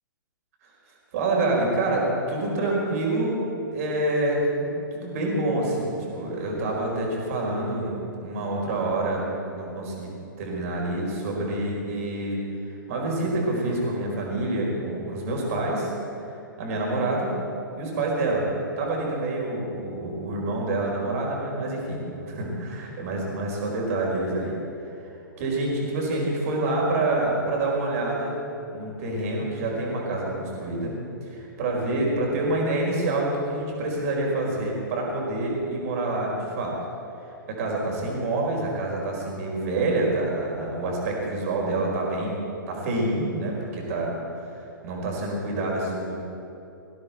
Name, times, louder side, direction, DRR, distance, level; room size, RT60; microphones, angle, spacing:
voice 1, 1.1-3.4 3.7-9.2 9.5-10.1 10.4-12.4 12.9-15.9 16.6-17.3 17.7-18.4 18.8-24.5 25.4-28.3 28.7-30.9 31.3-36.7 37.5-42.4 42.7-44.1 44.8-46.2, right 2 dB, 45° right, -2 dB, 4.8 m, -27 dB
20.0 x 15.5 x 4.5 m, 2.8 s
figure-of-eight pair, 110°, 11 cm